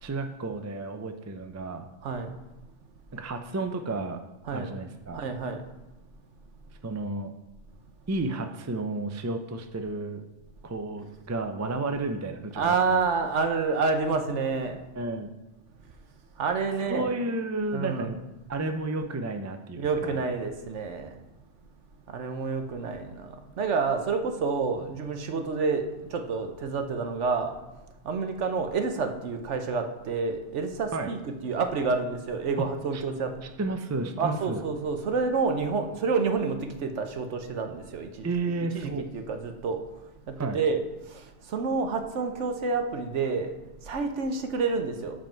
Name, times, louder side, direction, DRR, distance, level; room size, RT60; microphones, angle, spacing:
voice 1, 0.0-1.9 3.1-4.2 4.5-5.3 6.8-7.3 8.1-10.2 10.6-13.0 14.9-15.3 16.9-18.2 18.5-20.2 30.9-31.1 32.9-33.0 33.6-34.6 38.2-39.0 40.4-40.6, right 2 dB, 25° right, 6 dB, 0.4 m, -32 dB
voice 2, 5.1-5.6 12.6-14.7 16.4-17.1 17.7-18.1 19.8-21.1 22.1-23.3 23.6-25.8 26.1-27.5 28.0-33.3 34.2-38.3 38.7-39.8 40.4-40.8 41.5-43.5 43.9-45.1, right 4 dB, 75° right, 6 dB, 1.2 m, -28 dB
13.0 x 5.1 x 4.5 m, 1.0 s
omnidirectional pair, 1.2 m